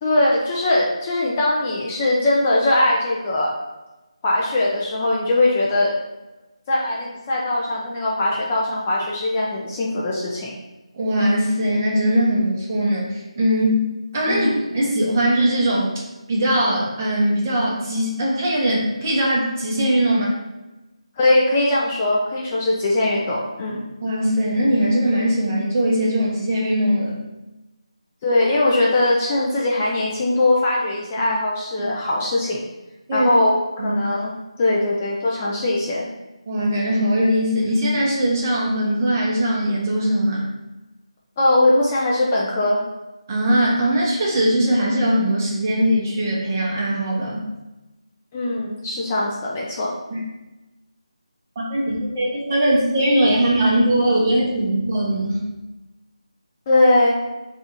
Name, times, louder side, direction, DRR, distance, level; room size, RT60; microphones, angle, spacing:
voice 1, 0.0-3.5 4.2-5.9 6.7-10.5 14.3-14.5 21.2-23.8 28.2-32.6 33.1-34.3 34.6-36.1 41.4-42.8 48.3-49.9 56.7-57.2, left 2 dB, 20° left, -4 dB, 0.3 m, -20 dB
voice 2, 10.9-13.9 14.1-14.5 14.7-15.9 16.3-20.4 23.7-27.2 33.1-33.3 33.8-34.0 36.5-40.4 43.3-47.4 50.1-50.2 51.7-55.4, right 1 dB, 25° right, -3 dB, 0.7 m, -20 dB
2.6 x 2.4 x 4.1 m, 1.1 s
figure-of-eight pair, 160°, 3 cm